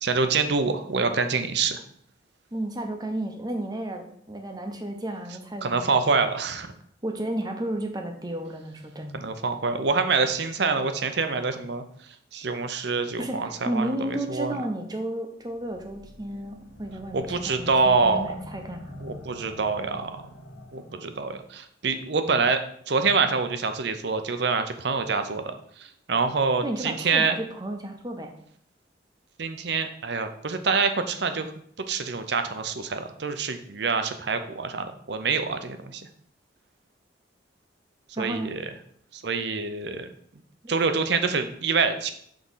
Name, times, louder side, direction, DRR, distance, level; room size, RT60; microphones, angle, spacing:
voice 1, 0.0-1.8 5.6-6.7 9.2-11.8 12.3-14.5 17.1-18.4 19.0-20.1 20.7-22.6 22.9-25.5 26.1-27.3 29.4-31.5 31.9-36.0 38.2-38.6 39.1-40.1 40.7-42.1, right 4 dB, 60° right, 8 dB, 0.6 m, -26 dB
voice 2, 2.5-6.1 7.0-9.3 13.2-19.1 26.6-28.3 38.2-38.5, right 1 dB, 20° right, 4 dB, 0.8 m, -33 dB
sound 1, 15.5-21.1, left 2 dB, 85° left, 0.9 m, -45 dB
6.1 x 3.8 x 5.5 m, 0.65 s
head